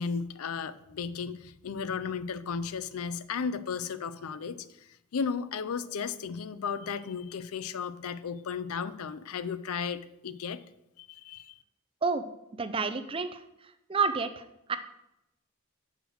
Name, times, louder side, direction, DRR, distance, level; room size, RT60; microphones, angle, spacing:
voice 1, 0.0-4.6 5.1-10.6 11.0-11.5, left 6 dB, 80° left, 14 dB, 0.5 m, -34 dB
voice 2, 12.5-13.4 13.9-14.8, right 4 dB, 25° right, 10 dB, 0.4 m, -29 dB
6.4 x 5.0 x 6.3 m, 0.88 s
head